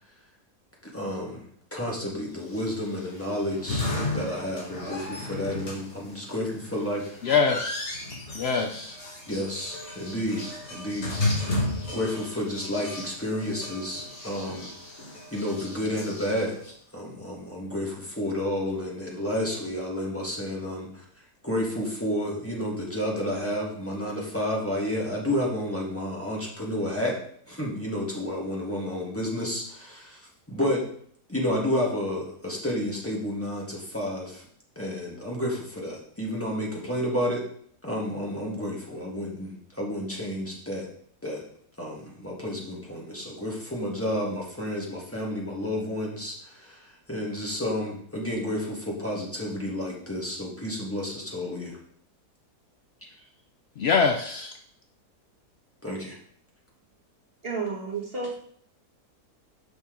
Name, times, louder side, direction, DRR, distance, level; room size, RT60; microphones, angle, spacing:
voice 1, 0.9-1.4 1.7-7.2 9.3-16.6 16.9-21.0 21.4-27.2 27.5-30.2 30.5-30.8 31.3-34.4 34.7-37.4 37.8-40.9 41.2-41.4 41.8-51.8 55.8-56.2, left 1 dB, 10° left, -4 dB, 1.6 m, -31 dB
sound 1, 2.4-16.7, left 2 dB, 45° left, 1.9 m, -34 dB
voice 2, 7.2-8.0 8.3-9.0 53.8-54.6, left 5 dB, 80° left, 4 dB, 0.5 m, -24 dB
voice 3, 57.4-58.4, right 4 dB, 40° right, -1 dB, 1.4 m, -31 dB
6.5 x 5.7 x 3.8 m, 0.62 s
omnidirectional pair, 1.7 m